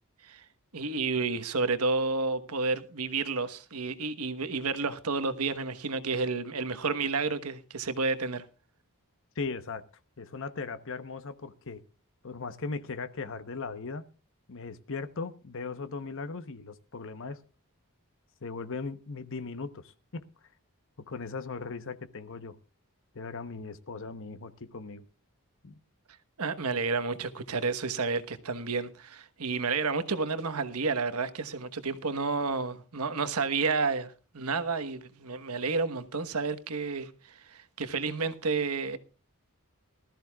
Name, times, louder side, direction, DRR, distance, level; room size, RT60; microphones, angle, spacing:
voice 1, 0.7-8.5 26.4-39.0, right 4 dB, 85° right, 1.2 m, -31 dB
voice 2, 9.4-9.8 10.2-11.8 12.2-14.0 14.5-17.4 18.4-20.2 21.1-22.6 23.1-25.0 25.6-25.7, left 4 dB, 60° left, 1.0 m, -38 dB
19.5 x 13.5 x 2.4 m
head